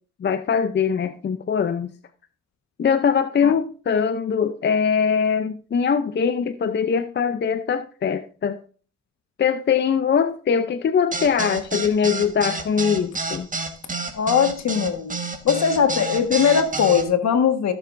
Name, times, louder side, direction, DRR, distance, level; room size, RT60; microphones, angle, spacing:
voice 1, 0.2-1.9 2.8-8.6 9.4-13.5, left 6 dB, 35° left, 10 dB, 0.6 m, -22 dB
sound 1, 11.1-17.0, right 3 dB, 25° right, 1.7 m, -29 dB
voice 2, 14.1-15.2 15.4-17.7, left 7 dB, 60° left, 7 dB, 1.6 m, -20 dB
15.5 x 6.9 x 2.6 m, 0.41 s
cardioid pair, 90°, 30 cm